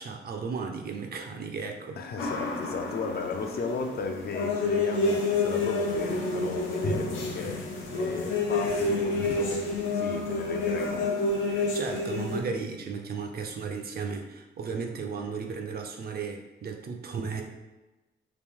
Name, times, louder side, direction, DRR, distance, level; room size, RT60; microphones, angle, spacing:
voice 1, 0.0-2.0 11.5-17.4, right 5 dB, 50° right, 3 dB, 0.5 m, -35 dB
voice 2, 2.0-11.3, left 4 dB, 55° left, 4 dB, 0.4 m, -35 dB
sound 1, 2.2-12.4, left 2 dB, 90° left, 0.7 m, -29 dB
3.0 x 2.5 x 3.5 m, 1.1 s
wide cardioid pair, 140°, 20 cm